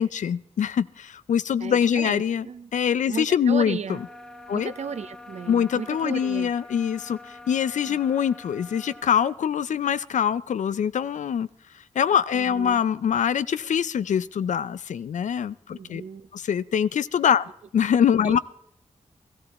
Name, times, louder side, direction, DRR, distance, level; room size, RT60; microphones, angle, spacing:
voice 1, 0.0-2.5 2.7-4.0 4.5-4.7 5.5-11.5 11.9-16.0 16.3-17.4 17.7-18.4, left 8 dB, 80° left, 0.5 m, -24 dB
voice 2, 1.6-2.7 3.1-4.0 4.5-6.5 7.9-8.0 12.3-12.8 15.7-16.3 18.2-18.4, right 6 dB, 65° right, 0.7 m, -35 dB
sound 1, 3.8-9.4, left 2 dB, 5° left, 0.6 m, -45 dB
16.0 x 14.5 x 4.2 m
wide cardioid pair, 140°, 12 cm